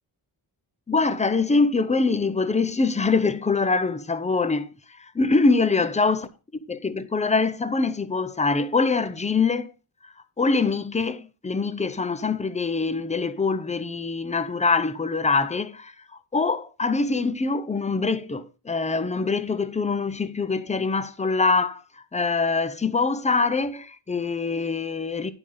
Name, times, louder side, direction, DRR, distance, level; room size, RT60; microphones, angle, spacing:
voice 1, 0.9-4.7 5.1-9.7 10.4-15.9 16.3-21.8 22.1-25.3, left 4 dB, 15° left, 0.5 m, -24 dB
11.0 x 4.9 x 5.4 m
wide cardioid pair, 175°, 48 cm